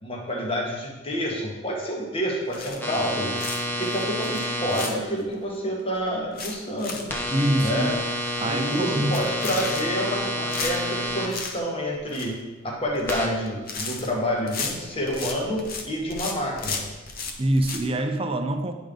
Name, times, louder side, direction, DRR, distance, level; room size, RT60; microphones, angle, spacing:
voice 1, 0.0-3.4 3.8-7.1 7.6-7.9 8.4-16.9, equal, 25° left, -1 dB, 1.3 m, -28 dB
sound 1, 2.5-3.0 3.4-5.3 5.8-5.9 6.1-7.1 7.4-7.5 7.9-8.0 8.2-8.6 9.0-10.2 10.5-11.6 11.9-12.4 12.8-13.2 13.5-15.8 16.1-17.8, left 4 dB, 45° left, 0.8 m, -34 dB
sound 2, 2.8-4.9 7.1-11.3 13.1-13.3, left 1 dB, 10° left, 0.8 m, -29 dB
voice 2, 7.3-7.9 8.4-9.2 17.4-18.7, right 1 dB, 25° right, 6 dB, 0.5 m, -24 dB
9.2 x 5.1 x 3.7 m, 1.2 s
head